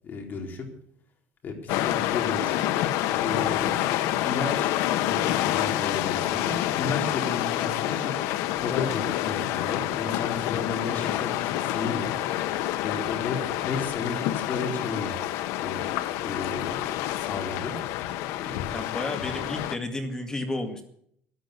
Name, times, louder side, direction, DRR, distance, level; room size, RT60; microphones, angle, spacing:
voice 1, 0.0-0.7 1.4-2.6 3.2-3.8 4.3-4.7 5.0-8.2 8.6-12.2 12.8-15.1 15.6-15.8 16.2-16.8 17.2-17.8 18.4-18.8, left 4 dB, 40° left, 3 dB, 4.2 m, -33 dB
sound 1, 1.7-19.8, left 13 dB, 85° left, 1.0 m, -28 dB
voice 2, 18.7-20.8, left 2 dB, 15° left, 6 dB, 2.1 m, -32 dB
13.5 x 11.5 x 8.2 m, 0.67 s
cardioid pair, 145°, 5 cm